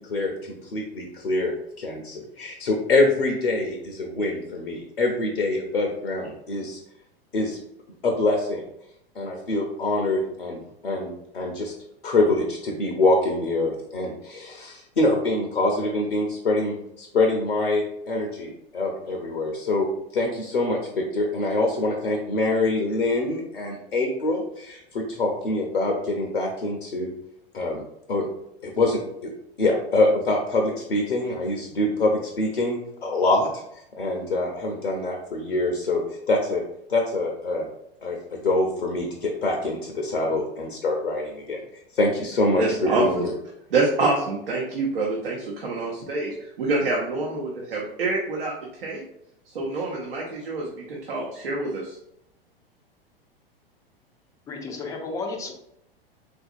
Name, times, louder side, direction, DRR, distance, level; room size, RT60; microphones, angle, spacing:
voice 1, 0.1-6.8 7.3-7.6 8.0-8.6 9.2-11.7 12.0-19.9 20.1-27.1 27.5-27.8 28.1-28.3 28.6-29.3 29.6-33.6 34.0-36.0 36.3-36.6 36.9-37.7 38.0-41.6 41.9-43.3, left 2 dB, 80° left, 1 dB, 0.6 m, -25 dB
voice 2, 42.6-43.2 43.7-48.5 48.8-49.0 49.5-52.0, right 3 dB, 65° right, -3 dB, 0.8 m, -26 dB
voice 3, 54.5-55.5, left 3 dB, 10° left, 2 dB, 0.4 m, -32 dB
3.8 x 2.5 x 2.4 m, 0.75 s
figure-of-eight pair, 90°, 30 cm